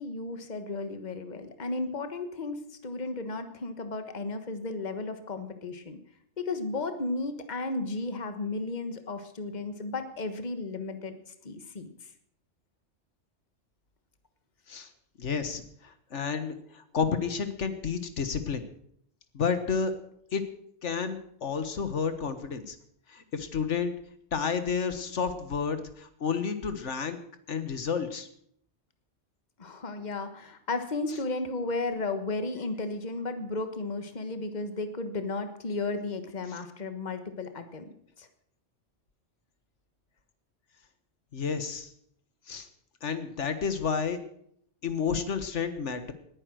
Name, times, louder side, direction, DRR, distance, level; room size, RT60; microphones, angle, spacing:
voice 1, 0.0-6.0 6.4-11.2 11.4-12.1 29.6-37.9 38.2-38.3, left 3 dB, 40° left, 9 dB, 1.5 m, -34 dB
voice 2, 15.2-15.6 16.1-18.6 19.3-19.9 20.3-20.4 20.8-22.8 23.1-23.9 24.3-27.2 27.5-28.3 41.3-41.9 42.5-42.7 43.0-44.2 44.8-46.1, left 6 dB, 85° left, 10 dB, 1.7 m, -30 dB
19.5 x 9.9 x 6.3 m, 0.68 s
omnidirectional pair, 1.2 m